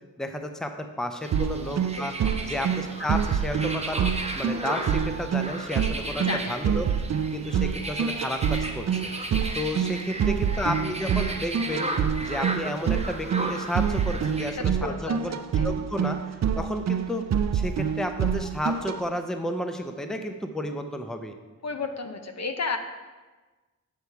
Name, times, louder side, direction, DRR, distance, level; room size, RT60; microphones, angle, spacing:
voice 1, 0.2-2.1 2.4-6.9 7.3-9.1 9.5-11.9 12.2-15.4 15.6-16.2 16.6-17.3 17.5-21.3, left 1 dB, ahead, 6 dB, 0.6 m, -32 dB
sound 1, 1.2-14.5, right 2 dB, 20° right, 0.9 m, -35 dB
sound 2, 1.3-19.0, right 7 dB, 55° right, 0.4 m, -27 dB
voice 2, 6.2-6.7 10.2-10.7 14.5-15.7 21.6-22.8, left 4 dB, 50° left, 6 dB, 0.8 m, -34 dB
8.4 x 5.6 x 4.7 m, 1.3 s
wide cardioid pair, 65°, 33 cm